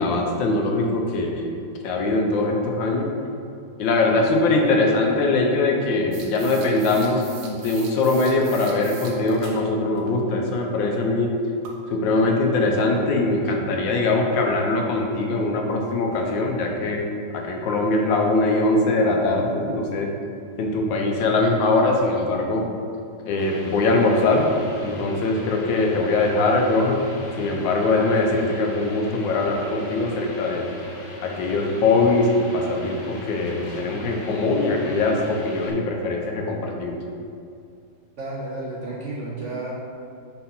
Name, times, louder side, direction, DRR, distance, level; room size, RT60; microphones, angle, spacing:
voice 1, 0.0-1.5 1.8-3.1 3.8-11.3 11.9-17.0 17.3-20.1 20.6-22.6 23.3-24.5 24.8-27.1 27.4-30.6 31.2-37.0, left 2 dB, 80° left, 1 dB, 1.5 m, -22 dB
sound 1, 6.1-9.6 10.0-10.1 11.6-11.8 13.0-13.1 16.1-16.2 16.5-16.6 17.1-17.2 17.7-17.8 18.3-18.4, right 6 dB, 80° right, 1.5 m, -41 dB
sound 2, 23.4-35.7, left 2 dB, 55° left, 1.3 m, -38 dB
voice 2, 38.2-39.7, right 2 dB, 55° right, -5 dB, 0.9 m, -32 dB
4.7 x 4.3 x 5.5 m, 2.4 s
omnidirectional pair, 2.0 m